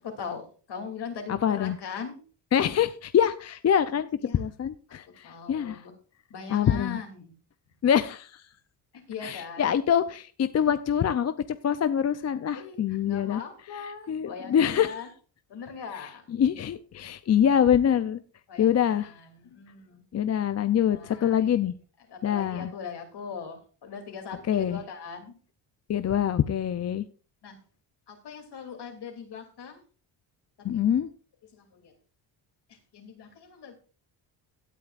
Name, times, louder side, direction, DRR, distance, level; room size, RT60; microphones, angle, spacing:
voice 1, 0.0-2.2 4.2-4.4 4.9-5.9 6.3-7.4 8.9-9.7 12.5-15.1 15.5-16.2 18.5-20.0 20.9-21.7 22.1-25.4 27.4-27.6 28.1-29.8 31.5-31.9 32.7-33.7, left 6 dB, 60° left, 2.9 m, -40 dB
voice 2, 1.3-1.8 2.5-5.8 6.5-7.0 7.8-8.4 9.2-11.3 11.6-13.4 13.8-14.9 16.3-18.2 18.6-19.1 20.1-21.7 22.2-22.7 24.5-24.8 25.9-27.0 30.6-31.1, left 9 dB, 35° left, 0.5 m, -25 dB
17.0 x 9.1 x 2.5 m
cardioid pair, 105°, 46 cm